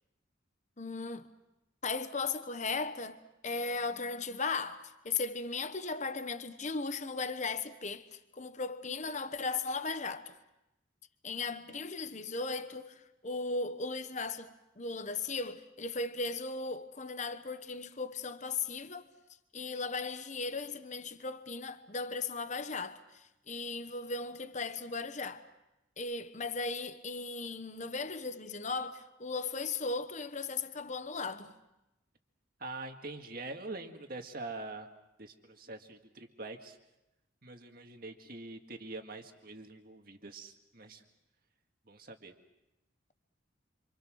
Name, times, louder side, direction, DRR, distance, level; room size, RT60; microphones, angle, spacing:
voice 1, 0.8-1.3 1.8-3.2 3.4-10.3 11.2-19.0 19.5-25.4 26.0-31.5, left 4 dB, 35° left, 1.0 m, -37 dB
voice 2, 32.6-34.9 35.2-36.8 37.4-41.0 41.9-42.3, right 2 dB, 45° right, 2.0 m, -44 dB
27.0 x 26.0 x 6.3 m
head